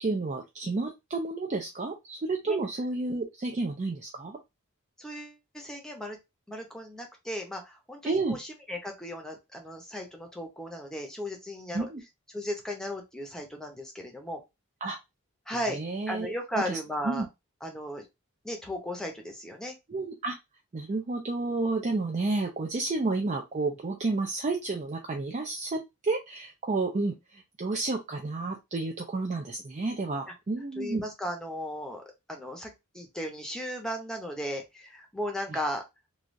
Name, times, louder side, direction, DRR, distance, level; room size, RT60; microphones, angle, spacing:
voice 1, 0.0-4.4 8.0-8.4 11.7-12.0 14.8-15.0 15.7-16.8 17.0-17.3 19.9-20.4 20.7-31.0 35.5-35.6, right 3 dB, 35° right, 2 dB, 0.4 m, -31 dB
voice 2, 5.0-6.2 6.5-11.9 12.3-14.4 15.5-15.8 16.1-17.2 17.6-18.1 18.4-19.8 30.8-32.0 32.3-35.8, equal, 5° left, 2 dB, 0.7 m, -36 dB
3.2 x 2.4 x 2.5 m, 0.22 s
head